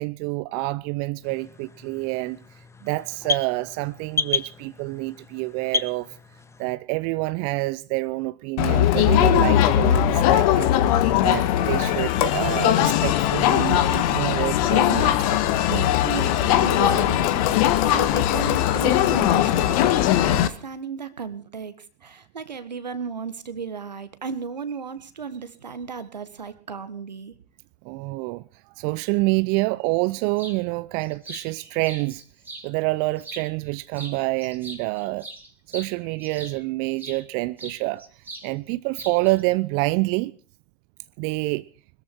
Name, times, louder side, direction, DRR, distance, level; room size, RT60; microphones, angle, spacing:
voice 1, 0.0-2.4 2.8-6.1 6.6-10.7 11.2-15.4 15.7-15.9 27.8-28.4 28.8-32.2 32.6-35.3 35.7-38.0 38.4-40.3 41.2-41.6, right 22 dB, 50° right, 0.7 m, -27 dB
sound 1, 1.2-6.7, left 4 dB, 15° left, 1.1 m, -32 dB
Crowd, 8.6-20.5, left 12 dB, 60° left, 1.6 m, -20 dB
voice 2, 16.0-27.3, right 6 dB, 85° right, 1.7 m, -34 dB
sound 2, 30.4-30.6 31.0-32.7 33.2-33.7 33.9-37.2 37.6-38.5 38.7-39.4, right 2 dB, 10° right, 3.9 m, -41 dB
21.0 x 14.0 x 4.5 m
figure-of-eight pair, 85°, 21 cm